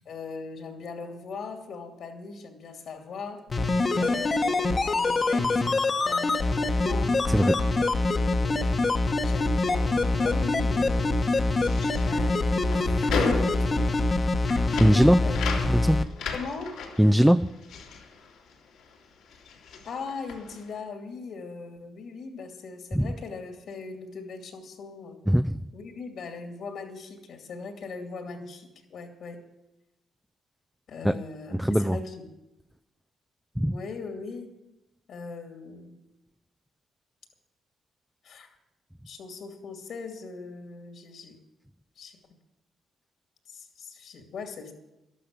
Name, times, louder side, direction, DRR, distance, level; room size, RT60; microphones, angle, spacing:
voice 1, 0.1-3.5 4.0-7.2 7.8-8.9 9.2-11.3 12.0-14.1 15.2-15.4 16.3-16.8 19.8-25.2 25.7-29.4 30.9-32.1 33.7-34.5 35.1-36.0 38.2-38.6 39.1-41.4 42.0-42.2 43.5-44.7, left 4 dB, 70° left, 5 dB, 2.4 m, -40 dB
sound 1, 3.5-16.0 16.3-16.4, left 3 dB, 35° left, 1.0 m, -25 dB
voice 2, 7.3-7.6 14.8-15.3 15.7-16.0 17.0-17.5 22.9-23.1 25.3-25.7 31.0-31.1 31.5-32.0 33.6-33.8, equal, ahead, 9 dB, 0.4 m, -21 dB
sound 2, 11.6-19.0 19.2-20.7, left 4 dB, 85° left, 2.7 m, -35 dB
12.0 x 12.0 x 6.7 m, 0.96 s
cardioid pair, 90°, 0 cm